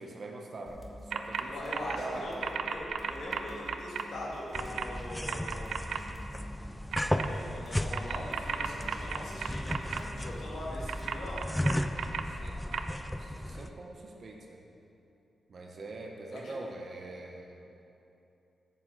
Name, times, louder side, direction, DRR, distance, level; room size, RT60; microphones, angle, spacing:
voice 1, 0.0-2.3 4.6-4.7 12.1-12.8 13.1-14.6 15.5-17.6, right 2 dB, 45° right, 1 dB, 0.8 m, -44 dB
sound 1, 0.7-11.3, equal, 10° right, 1.2 m, -50 dB
sound 2, 1.1-1.4 1.7-2.0 2.4-4.0 4.5-4.8 5.3-6.0 6.9-7.3 7.9-10.0 10.9-12.2 12.7-12.8, right 7 dB, 80° right, 0.5 m, -34 dB
voice 2, 1.4-5.8 7.1-11.4 16.3-16.5, left 1 dB, 70° left, -5 dB, 1.9 m, -41 dB
sound 3, 4.5-13.7, left 1 dB, 5° left, 0.3 m, -35 dB
13.0 x 7.2 x 3.9 m, 2.9 s
wide cardioid pair, 150°, 0 cm